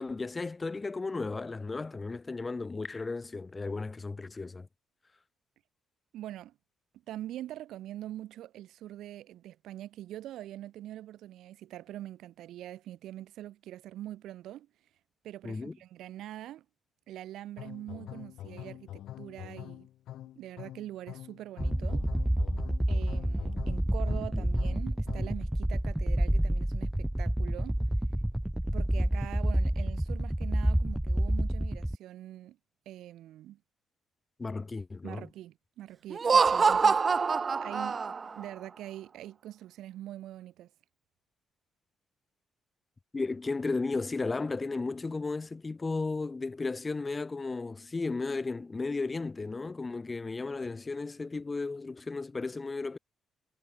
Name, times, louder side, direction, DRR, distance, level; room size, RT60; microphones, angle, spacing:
voice 1, 0.0-4.7 15.4-15.8 24.1-24.5 34.4-35.3 43.1-53.0, left 3 dB, 25° left, 5.5 m, -34 dB
voice 2, 6.1-6.5 7.1-14.7 15.2-16.6 17.1-19.9 20.3-22.1 22.9-27.8 28.7-32.6 32.8-33.6 35.0-38.0 38.4-40.7, right 13 dB, 80° right, 3.4 m, -44 dB
sound 1, 17.6-25.4, left 13 dB, 80° left, 2.7 m, -45 dB
sound 2, 21.6-32.0, right 1 dB, 5° right, 1.3 m, -29 dB
Laughter, 36.1-38.4, right 5 dB, 35° right, 0.9 m, -25 dB
cardioid pair, 90°, 0 cm